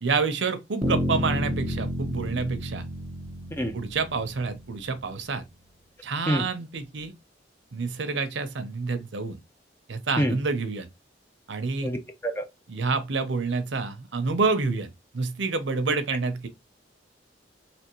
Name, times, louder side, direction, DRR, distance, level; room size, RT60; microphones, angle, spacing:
voice 1, 0.0-2.8 3.7-5.4 6.0-7.1 7.7-9.4 9.9-10.9 11.5-11.9 12.7-16.5, right 4 dB, 75° right, 0.7 m, -28 dB
sound 1, 0.8-4.8, equal, 15° right, 1.0 m, -31 dB
voice 2, 11.8-12.4, equal, 15° left, 0.6 m, -26 dB
3.5 x 3.0 x 3.0 m
head